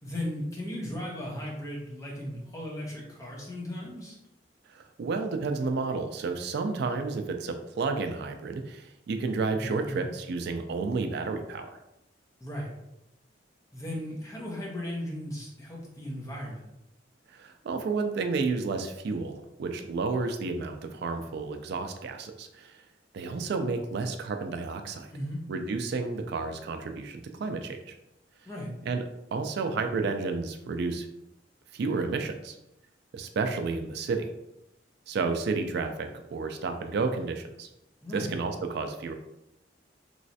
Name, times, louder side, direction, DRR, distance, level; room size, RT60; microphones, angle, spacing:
voice 1, 0.0-4.2 9.6-10.1 12.4-12.7 13.7-16.6 25.1-25.4 28.5-28.8 38.0-38.3, left 1 dB, 20° left, -4 dB, 0.9 m, -36 dB
voice 2, 4.7-11.7 17.3-22.8 23.1-25.1 25.5-27.9 28.9-29.0 29.3-31.1 31.7-32.6 33.1-34.3 35.1-37.7 38.1-39.1, right 4 dB, 60° right, 6 dB, 0.3 m, -31 dB
3.1 x 3.0 x 2.7 m, 0.87 s
head